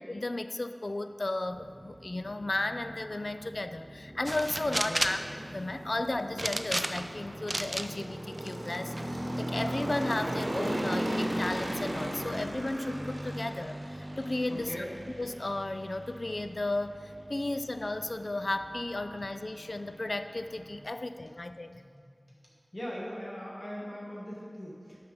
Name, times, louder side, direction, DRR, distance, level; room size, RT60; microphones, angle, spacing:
voice 1, 0.1-5.2 5.5-14.7 15.2-21.8, left 2 dB, 65° left, 10 dB, 0.3 m, -34 dB
sound 1, 1.5-20.8, right 1 dB, 55° right, 1.1 m, -38 dB
sound 2, 4.2-5.3 6.4-7.1 7.5-7.9 8.4-9.0, right 1 dB, 35° right, 0.4 m, -31 dB
voice 2, 4.7-5.0 14.5-14.9 21.7-25.0, equal, 50° left, -4 dB, 1.4 m, -41 dB
6.9 x 5.5 x 6.5 m, 2.2 s
wide cardioid pair, 50°, 0 cm